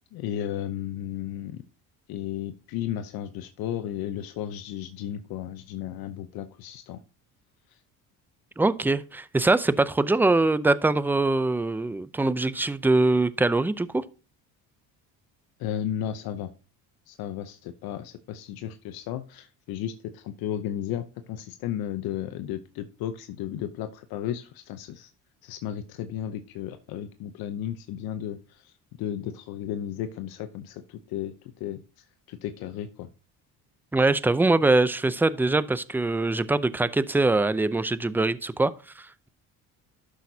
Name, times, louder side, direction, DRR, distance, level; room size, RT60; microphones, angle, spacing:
voice 1, 0.1-1.6 2.1-7.0 7.7-7.8 15.6-16.5 17.1-25.1 25.4-28.7 29.0-33.1, left 10 dB, 75° left, 0.8 m, -34 dB
voice 2, 8.6-14.0 33.9-39.3, right 2 dB, 5° right, 0.5 m, -23 dB
11.5 x 6.3 x 2.7 m
cardioid pair, 100°, 36 cm